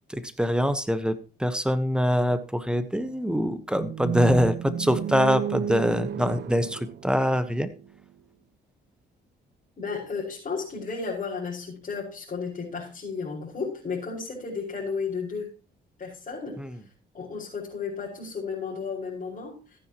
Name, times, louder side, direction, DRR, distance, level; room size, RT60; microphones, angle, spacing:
voice 1, 0.1-7.7 16.6-16.7, equal, 5° right, 11 dB, 1.2 m, -24 dB
sound 1, 3.7-7.9, right 9 dB, 60° right, 0.8 m, -32 dB
voice 2, 9.8-15.5 16.0-16.6 17.1-19.6, left 5 dB, 40° left, -7 dB, 5.5 m, -33 dB
14.5 x 9.9 x 3.0 m, 0.33 s
cardioid pair, 90°, 20 cm